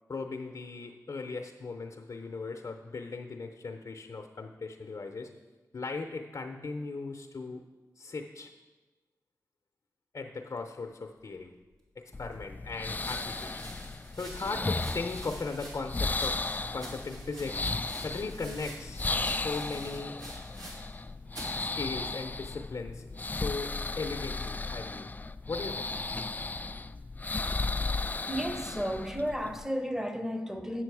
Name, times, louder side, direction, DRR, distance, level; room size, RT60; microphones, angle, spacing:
voice 1, 0.1-5.3 5.7-7.6 8.0-8.5 10.1-11.5 12.0-13.7 14.1-17.6 18.0-20.3 21.6-25.1 25.5-25.9, left 3 dB, 50° left, 4 dB, 0.7 m, -38 dB
sound 1, 11.9-12.0 12.9-21.0 21.3-21.6 22.4-22.8, right 1 dB, 75° right, 2.5 m, -47 dB
sound 2, 12.1-29.7, left 3 dB, 25° left, 0.3 m, -35 dB
voice 2, 28.3-30.8, equal, 5° right, 7 dB, 1.0 m, -33 dB
8.4 x 6.3 x 4.7 m, 1.2 s
cardioid pair, 45°, 7 cm